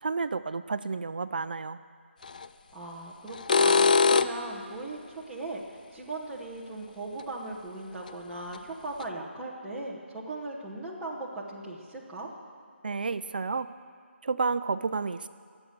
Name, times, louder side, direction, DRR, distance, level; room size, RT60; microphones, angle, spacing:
voice 1, 0.0-1.8 12.8-13.7 14.2-15.3, right 4 dB, 45° right, 13 dB, 0.4 m, -31 dB
sound 1, 2.2-2.5 3.3-4.5 7.2-7.3 8.1-8.2 8.5-8.6 9.0-9.1, left 5 dB, 40° left, 0.4 m, -22 dB
voice 2, 2.7-12.3, right 2 dB, 5° right, -8 dB, 1.0 m, -38 dB
22.5 x 8.1 x 6.7 m, 2.2 s
figure-of-eight pair, 170°, 7 cm